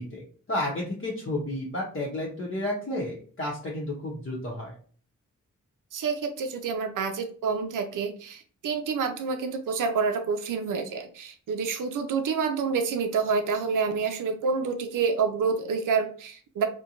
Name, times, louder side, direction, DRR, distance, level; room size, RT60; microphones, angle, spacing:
voice 1, 0.0-4.7, left 1 dB, 40° left, -4 dB, 0.8 m, -32 dB
voice 2, 5.9-16.7, right 5 dB, 70° right, 6 dB, 0.5 m, -28 dB
2.5 x 2.2 x 2.8 m, 0.43 s
cardioid pair, 60°, 32 cm